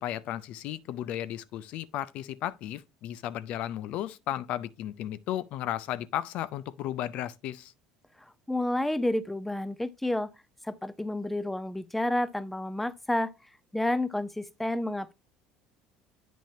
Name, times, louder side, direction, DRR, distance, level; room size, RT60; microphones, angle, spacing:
voice 1, 0.0-7.7, left 12 dB, 60° left, 0.5 m, -34 dB
voice 2, 8.5-10.3 10.6-13.3 13.7-15.1, left 1 dB, 5° left, 0.6 m, -30 dB
8.5 x 6.1 x 2.8 m
supercardioid pair, 100°, 2 cm